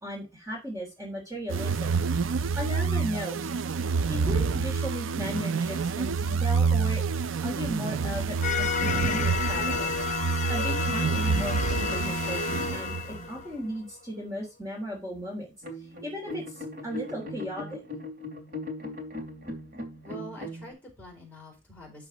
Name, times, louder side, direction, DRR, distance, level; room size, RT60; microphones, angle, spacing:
voice 1, 0.0-2.0 2.6-3.4 4.1-7.0 7.4-9.9 10.5-15.5 16.0-17.8, equal, 15° right, -1 dB, 3.2 m, -36 dB
sound 1, 1.5-13.2, right 5 dB, 80° right, 0.5 m, -28 dB
sound 2, 8.4-13.9, left 6 dB, 40° left, 0.9 m, -31 dB
sound 3, 15.6-20.7, left 2 dB, 50° right, 2.8 m, -39 dB
voice 2, 20.0-22.1, equal, 10° left, 0 dB, 4.3 m, -45 dB
12.0 x 4.1 x 5.1 m, 0.25 s
head